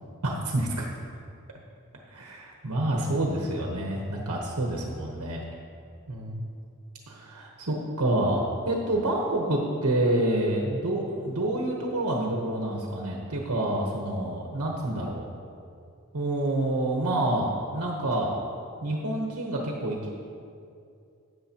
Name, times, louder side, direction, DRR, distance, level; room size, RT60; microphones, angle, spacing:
voice 1, 0.2-0.9 2.1-5.4 6.1-6.4 7.1-15.3 16.1-18.4 18.8-20.1, right 1 dB, 85° right, -1 dB, 1.0 m, -28 dB
13.0 x 8.6 x 2.9 m, 2.5 s
head